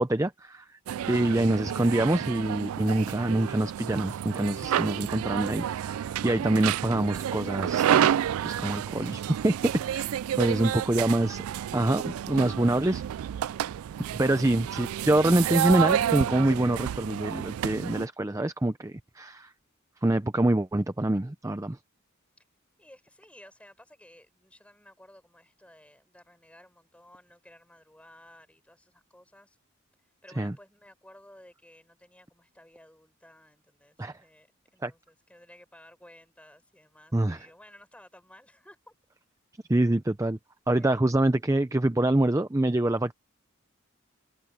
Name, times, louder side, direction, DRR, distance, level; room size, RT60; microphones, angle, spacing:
voice 1, 0.0-0.7 1.1-8.1 8.4-9.6 9.9-10.1 10.4-11.4 11.7-13.0 14.1-19.5 20.0-21.8 30.4-30.5 34.0-34.2 34.8-34.9 37.1-37.5 39.7-40.4 40.7-43.1, right 1 dB, 15° right, 0.5 m, -25 dB
voice 2, 0.9-1.7 10.2-11.0 22.4-22.5 22.8-29.6 30.0-38.9 40.7-41.1, left 1 dB, 5° left, 7.1 m, -55 dB
sound 1, 0.9-18.1, right 10 dB, 85° right, 0.3 m, -30 dB
head